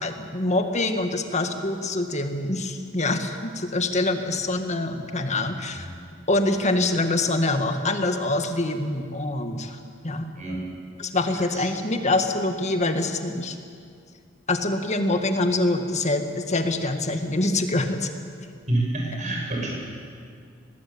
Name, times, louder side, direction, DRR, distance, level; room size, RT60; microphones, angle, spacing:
voice 1, 0.0-5.9 6.3-9.8 10.0-10.3 11.0-13.6 14.5-18.1, left 2 dB, 35° left, 6 dB, 1.9 m, -25 dB
voice 2, 18.7-19.7, right 1 dB, 40° right, -1 dB, 7.1 m, -27 dB
23.5 x 19.0 x 8.8 m, 2.2 s
head